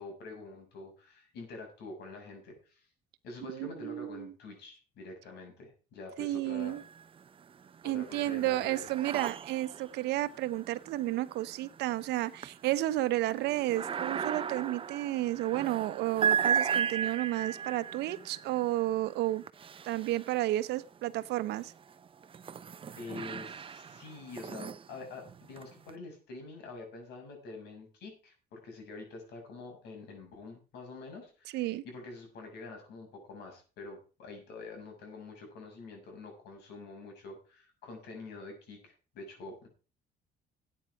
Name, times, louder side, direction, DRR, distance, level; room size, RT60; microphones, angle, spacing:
voice 1, 0.0-2.9 3.2-6.8 7.8-8.9 23.0-39.7, left 3 dB, 80° left, 3 dB, 6.7 m, -46 dB
voice 2, 3.4-4.3 6.2-6.8 7.8-19.4 19.8-21.7 31.5-31.8, right 15 dB, 80° right, 14 dB, 0.9 m, -32 dB
sound 1, 6.6-7.3 7.6-20.8 21.4-25.9, right 7 dB, 30° right, 0.6 m, -36 dB
13.5 x 9.0 x 4.8 m, 0.35 s
cardioid pair, 110°, 17 cm